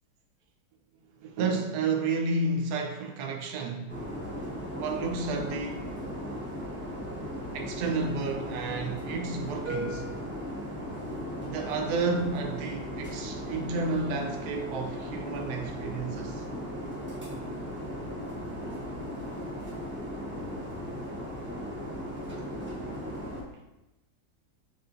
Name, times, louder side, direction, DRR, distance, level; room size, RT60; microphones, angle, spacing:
voice 1, 1.2-3.9 4.8-5.9 7.5-10.1 11.4-16.4 20.7-21.2 22.3-22.9, right 3 dB, 75° right, 1.1 m, -31 dB
sound 1, 3.9-23.4, equal, 10° right, 0.6 m, -37 dB
6.7 x 2.6 x 2.5 m
omnidirectional pair, 1.9 m